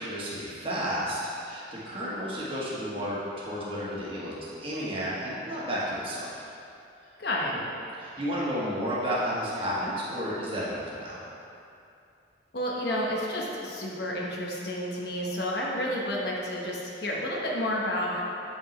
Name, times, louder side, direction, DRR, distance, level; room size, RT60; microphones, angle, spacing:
voice 1, 0.0-6.4 7.5-7.6 7.9-11.2, equal, 30° right, -8 dB, 1.3 m, -32 dB
voice 2, 7.2-7.5 12.5-18.2, left 1 dB, 60° left, -3 dB, 0.9 m, -30 dB
7.3 x 5.1 x 3.2 m, 2.6 s
head